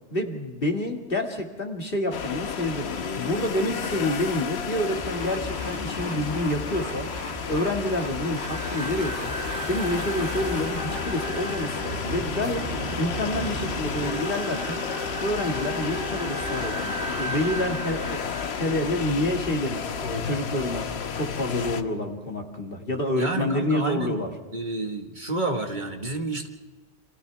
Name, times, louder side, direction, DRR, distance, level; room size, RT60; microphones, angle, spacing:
voice 1, 0.1-7.1 7.5-9.3 9.6-14.8 15.2-18.3 18.5-20.9 21.1-24.3, left 1 dB, 55° left, 2 dB, 2.4 m, -28 dB
sound 1, 2.1-21.8, left 6 dB, 70° left, 1.2 m, -32 dB
sound 2, 5.0-11.1, left 1 dB, 20° right, 3.0 m, -38 dB
sound 3, 8.3-19.6, right 2 dB, 60° right, 1.7 m, -35 dB
voice 2, 23.2-24.2 24.5-26.5, right 2 dB, 45° right, 3 dB, 1.8 m, -29 dB
29.0 x 26.5 x 3.5 m, 1.3 s
omnidirectional pair, 1.1 m